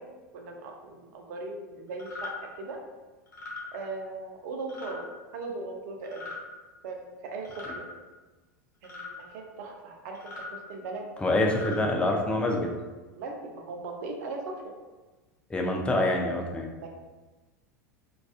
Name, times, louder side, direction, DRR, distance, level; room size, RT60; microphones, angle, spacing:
voice 1, 0.0-2.8 3.7-5.1 5.3-6.3 6.8-7.9 8.8-10.3 10.7-11.1 13.2-14.7 16.8-16.9, right 3 dB, 60° right, 1 dB, 0.5 m, -39 dB
sound 1, 2.0-2.3 3.3-3.6 4.7-5.0 6.0-6.4 7.4-7.8 8.8-9.1 10.1-10.5 11.4-11.8, left 3 dB, 80° left, 0.8 m, -40 dB
voice 2, 11.2-12.7 15.5-16.7, left 1 dB, 10° left, 1 dB, 0.4 m, -26 dB
2.3 x 2.3 x 2.3 m, 1.2 s
hypercardioid pair, 85°, 9 cm